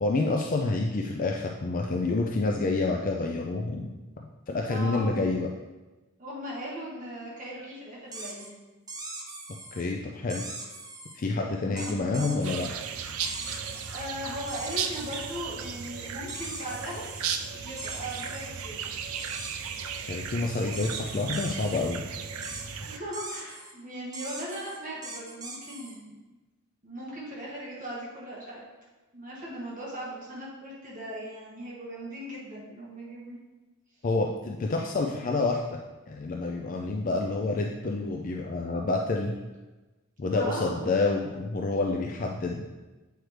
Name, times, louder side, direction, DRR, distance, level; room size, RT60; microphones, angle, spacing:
voice 1, 0.0-3.9 4.5-5.5 9.7-10.5 11.2-12.7 20.0-22.0 34.0-35.8 36.1-39.3 40.2-42.6, left 3 dB, 40° left, 1 dB, 0.4 m, -28 dB
voice 2, 4.7-5.2 6.2-8.6 11.6-12.7 13.3-13.6 13.9-17.1 17.5-18.9 22.3-26.2 26.8-28.6 29.1-33.4 40.3-40.8, equal, 40° right, -5 dB, 1.5 m, -39 dB
sound 1, 8.1-8.5 8.9-9.8 10.3-11.2 11.8-12.7 13.2-14.1 14.5-15.4 16.3-17.3 17.8-18.4 19.1-20.0 20.7-22.0 22.4-22.7 23.1-23.7 24.1-26.0, right 2 dB, 20° right, 0.7 m, -41 dB
sound 2, 12.4-23.0, right 7 dB, 85° right, 0.5 m, -36 dB
7.9 x 4.6 x 3.3 m, 1.2 s
head